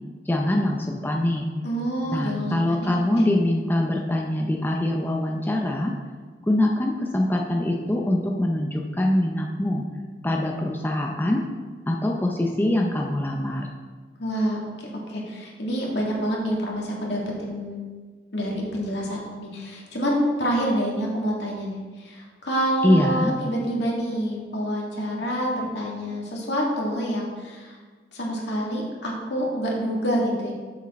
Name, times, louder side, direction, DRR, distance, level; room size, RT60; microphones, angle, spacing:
voice 1, 0.3-1.5 2.1-5.9 6.5-9.9 10.2-11.4 11.9-13.7 22.8-23.3, left 1 dB, 10° left, 1 dB, 0.5 m, -23 dB
voice 2, 1.6-2.9 3.2-3.3 14.2-17.8 18.3-27.8 28.1-30.5, equal, 80° left, -3 dB, 2.0 m, -27 dB
7.3 x 6.3 x 4.2 m, 1.4 s
head